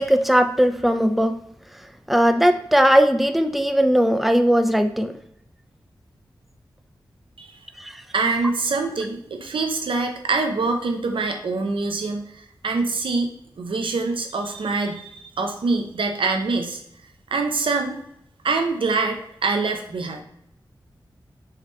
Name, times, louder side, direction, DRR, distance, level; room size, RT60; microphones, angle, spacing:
voice 1, 0.0-1.3 2.1-5.1 7.8-8.0, equal, ahead, 8 dB, 0.4 m, -18 dB
voice 2, 8.1-13.3 13.6-16.8 17.3-18.0 18.4-20.2, right 3 dB, 85° right, 4 dB, 0.7 m, -25 dB
4.8 x 3.3 x 3.2 m, 0.76 s
wide cardioid pair, 65°, 9 cm